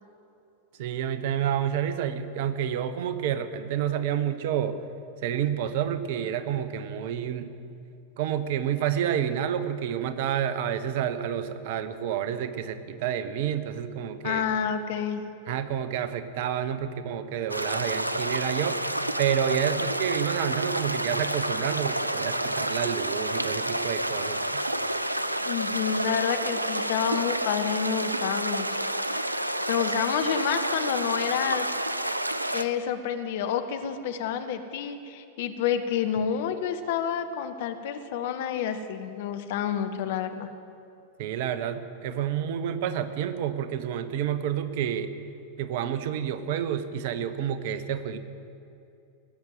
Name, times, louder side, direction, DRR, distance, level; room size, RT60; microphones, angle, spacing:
voice 1, 0.8-4.8 5.2-7.5 8.2-14.4 15.5-18.8 19.2-24.4 41.2-45.1 45.6-48.2, right 9 dB, 50° right, 12 dB, 0.8 m, -29 dB
voice 2, 14.2-15.2 25.4-29.3 29.7-31.7 32.5-40.5, left 8 dB, 55° left, 8 dB, 0.9 m, -29 dB
sound 1, 17.5-32.6, right 1 dB, 85° right, 0.5 m, -29 dB
17.5 x 7.3 x 8.0 m, 2.6 s
figure-of-eight pair, 90°, 0 cm